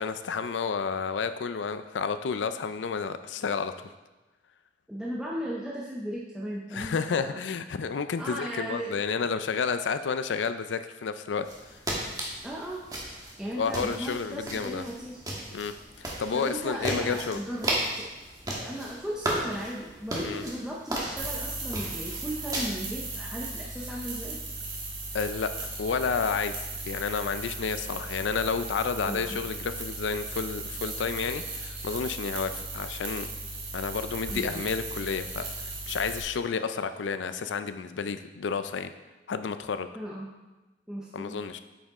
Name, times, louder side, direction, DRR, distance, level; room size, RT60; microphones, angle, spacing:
voice 1, 0.0-3.7 6.7-11.8 13.6-14.8 15.5-17.4 20.2-20.4 25.1-26.5 26.9-33.3 33.7-38.9 39.3-39.9 41.1-41.6, left 5 dB, 85° left, 11 dB, 0.4 m, -31 dB
voice 2, 4.9-7.4 8.2-8.9 12.4-12.8 13.4-15.2 16.3-18.1 18.5-24.4 29.0-29.4 34.3-34.7 39.9-40.3 40.9-41.4, equal, 5° right, -5 dB, 0.6 m, -36 dB
sound 1, 11.4-22.6, right 1 dB, 20° right, 1.3 m, -35 dB
sound 2, 21.2-36.2, right 2 dB, 85° right, 1.7 m, -37 dB
8.6 x 5.3 x 3.6 m, 1.1 s
head